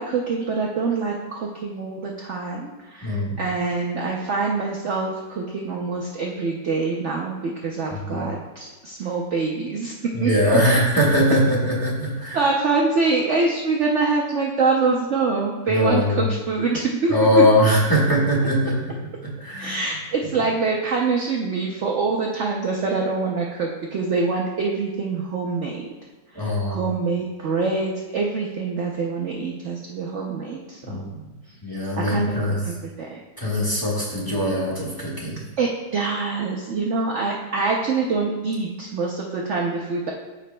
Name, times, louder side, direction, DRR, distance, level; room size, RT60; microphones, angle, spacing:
voice 1, 0.0-9.9 10.2-10.3 12.3-17.4 19.6-25.9 26.3-31.0 31.9-32.3 32.7-33.2 35.6-40.1, right 4 dB, 70° right, -1 dB, 0.6 m, -25 dB
voice 2, 3.0-3.4 7.9-8.3 10.1-12.5 15.7-16.3 17.1-19.8 26.3-27.0 30.8-31.3 31.6-32.6 33.4-35.4, equal, 10° left, -5 dB, 1.4 m, -21 dB
13.5 x 5.0 x 2.2 m, 1.2 s
omnidirectional pair, 2.0 m